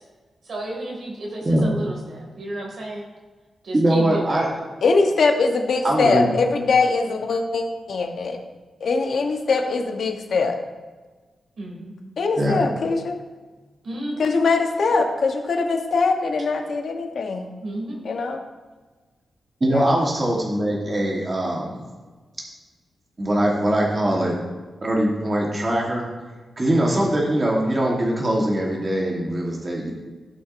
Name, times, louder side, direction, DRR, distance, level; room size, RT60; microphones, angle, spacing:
voice 1, 0.4-3.1 3.6-4.4 11.6-11.9 13.8-14.3 17.6-18.0, right 1 dB, 60° right, -1 dB, 2.2 m, -32 dB
voice 2, 3.7-4.5 5.8-6.3 12.4-12.6 19.6-21.8 23.2-24.4 24.8-26.1 26.6-29.9, right 1 dB, 25° right, -2 dB, 1.2 m, -21 dB
voice 3, 4.8-8.4 8.8-10.6 12.2-13.1 14.2-17.5 18.0-18.4 19.7-19.8, left 4 dB, 60° left, 4 dB, 0.9 m, -22 dB
15.5 x 5.9 x 2.6 m, 1.3 s
wide cardioid pair, 175°, 0 cm